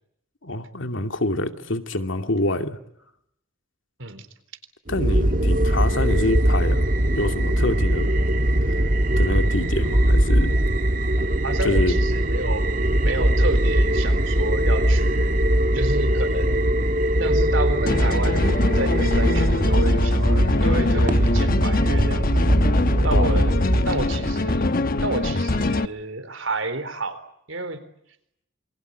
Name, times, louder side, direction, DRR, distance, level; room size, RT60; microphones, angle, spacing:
voice 1, 0.4-2.8 4.9-6.9 7.1-8.1 9.2-10.6 11.6-12.0 23.1-23.5, left 2 dB, 70° left, 6 dB, 2.6 m, -26 dB
sound 1, 4.9-23.8, right 1 dB, 45° right, 1.6 m, -20 dB
voice 2, 11.4-12.6 13.0-15.4 15.7-16.7 17.2-22.3 23.0-23.6 23.8-24.6 25.0-27.2 27.5-27.8, right 2 dB, 75° right, 11 dB, 3.9 m, -30 dB
sound 2, 17.9-25.9, left 2 dB, 45° left, 1.1 m, -23 dB
28.0 x 25.0 x 8.1 m, 0.75 s
head